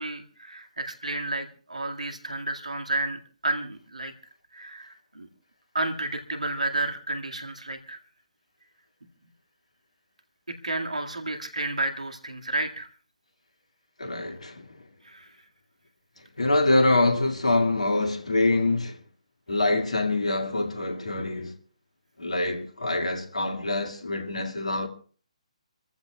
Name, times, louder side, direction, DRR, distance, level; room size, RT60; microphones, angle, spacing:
voice 1, 0.0-4.1 4.5-5.3 5.7-8.0 10.6-12.9 15.0-15.3, right 2 dB, 75° right, 2.0 m, -31 dB
voice 2, 14.0-14.8 16.4-19.0 19.5-21.5 22.2-24.9, left 2 dB, 70° left, 2.2 m, -25 dB
28.0 x 14.5 x 2.3 m
figure-of-eight pair, 135°, 4 cm